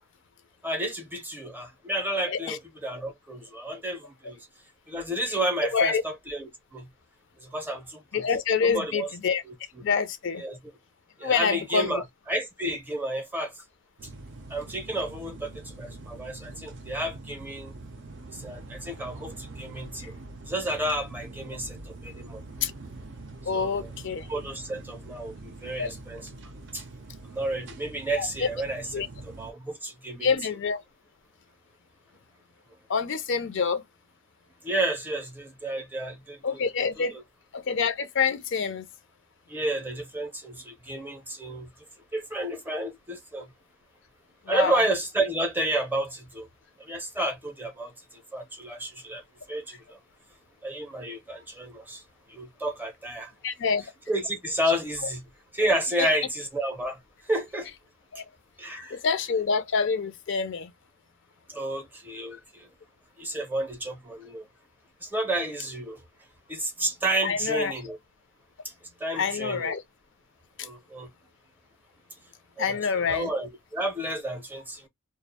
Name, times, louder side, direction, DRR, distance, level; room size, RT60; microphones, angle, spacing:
voice 1, 0.6-4.5 4.9-6.9 7.4-8.2 8.6-9.1 9.4-9.5 10.4-10.6 11.2-13.5 14.5-17.7 18.3-20.1 20.5-22.4 23.5-23.9 24.3-26.3 26.7-26.8 27.2-28.9 29.2-30.3 34.6-36.6 37.0-37.1 39.5-41.7 42.1-43.5 44.5-46.5 46.8-50.0 50.6-52.0 52.3-53.3 54.1-55.3 55.5-57.7 58.6-59.0 61.5-62.7 63.2-64.5 65.0-66.0 66.5-68.0 68.6-68.7 69.0-69.8 70.6-71.1 72.6-74.9, right 1 dB, 10° right, 0.6 m, -31 dB
voice 2, 8.1-9.4 9.8-10.4 11.2-12.0 22.6-22.7 23.5-24.3 25.8-25.9 28.2-28.5 28.9-29.1 30.2-30.8 32.9-33.8 36.4-37.2 37.5-38.9 44.5-44.8 53.4-53.9 56.0-56.1 58.1-58.2 58.9-60.7 67.2-67.7 69.2-69.8 72.6-73.3, left 5 dB, 55° left, 0.4 m, -26 dB
sound 1, 14.0-29.5, right 2 dB, 55° right, 0.4 m, -44 dB
2.4 x 2.0 x 2.7 m
head